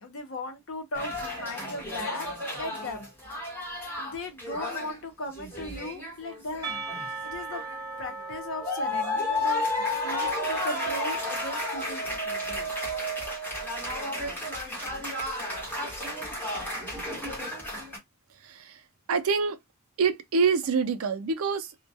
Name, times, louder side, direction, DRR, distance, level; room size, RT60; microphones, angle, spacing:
voice 1, 0.0-2.3 2.6-3.1 4.0-6.8 7.2-7.6 8.0-12.7, left 2 dB, 65° left, 0.7 m, -37 dB
sound 1, 0.9-5.0 5.3-7.1 7.5-8.3 8.6-18.0, left 1 dB, 10° left, 1.0 m, -32 dB
Percussion, 6.6-11.5, right 4 dB, 20° right, 0.9 m, -39 dB
voice 2, 18.4-18.8 19.1-19.6 20.0-21.7, right 5 dB, 70° right, 0.4 m, -26 dB
2.2 x 2.2 x 2.6 m
head